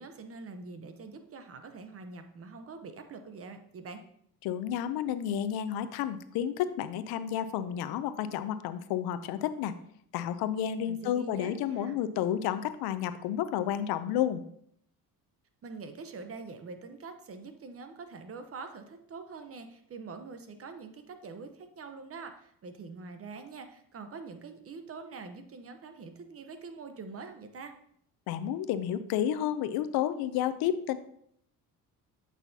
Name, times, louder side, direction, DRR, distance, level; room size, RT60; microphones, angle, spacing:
voice 1, 0.0-4.0 10.9-12.0 15.6-27.7, right 4 dB, 40° right, 8 dB, 0.8 m, -44 dB
voice 2, 4.4-9.7 10.1-14.4 28.3-31.0, left 10 dB, 85° left, 13 dB, 0.6 m, -31 dB
8.1 x 5.8 x 2.7 m, 0.69 s
cardioid pair, 110°, 36 cm